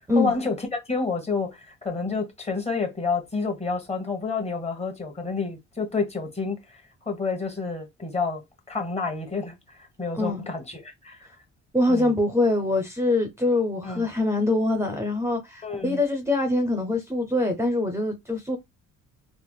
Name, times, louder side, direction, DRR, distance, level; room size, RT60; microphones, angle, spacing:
voice 1, 0.1-6.8 7.1-8.4 8.7-11.3 11.9-12.1 13.8-14.1 15.6-16.0, left 4 dB, 20° left, 1.2 m, -29 dB
voice 2, 10.1-10.5 11.7-18.6, left 2 dB, 10° right, 0.7 m, -24 dB
3.4 x 2.5 x 2.2 m
cardioid pair, 90°, 30 cm